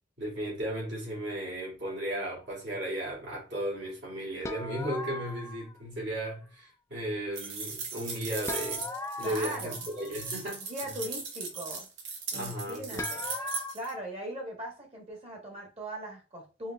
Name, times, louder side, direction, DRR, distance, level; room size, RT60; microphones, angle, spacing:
voice 1, 0.2-8.9 9.2-10.9 12.3-13.1, right 1 dB, 65° right, 2.3 m, -35 dB
sound 1, 4.4-5.8 8.5-10.4 13.0-13.7, left 2 dB, 15° left, 0.3 m, -39 dB
sound 2, 7.3-13.9, right 4 dB, 80° right, 1.0 m, -38 dB
voice 2, 9.2-9.8 10.7-11.8 12.3-13.3 13.7-16.7, right 1 dB, 35° right, 1.3 m, -39 dB
4.8 x 3.0 x 2.3 m
head